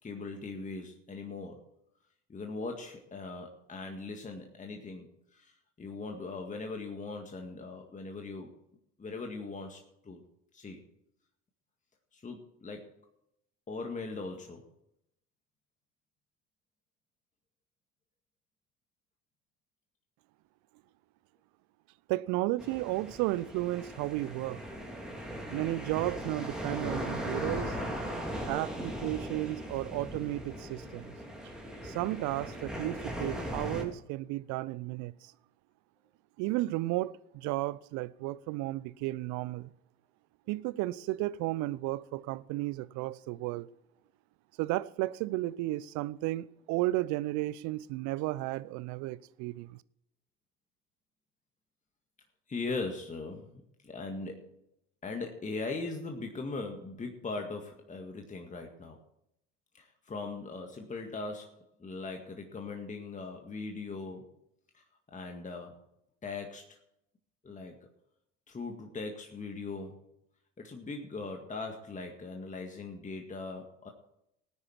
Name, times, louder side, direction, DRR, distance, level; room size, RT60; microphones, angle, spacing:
voice 1, 0.0-1.6 2.3-5.1 5.3-8.5 9.0-10.2 10.5-10.8 12.1-13.0 13.7-14.6 52.5-54.5 55.0-59.0 59.7-64.3 64.7-64.8 65.1-65.8 66.2-66.8 67.4-67.9 68.5-70.0 70.6-73.9, left 3 dB, 20° left, 1.9 m, -40 dB
voice 2, 22.1-24.6 25.5-27.8 28.5-31.1 31.8-35.3 36.4-39.7 40.5-43.7 44.6-49.8, right 18 dB, 55° right, 0.7 m, -33 dB
sound 1, 22.6-33.8, equal, ahead, 3.6 m, -38 dB
18.5 x 9.7 x 4.6 m
hypercardioid pair, 70°, 36 cm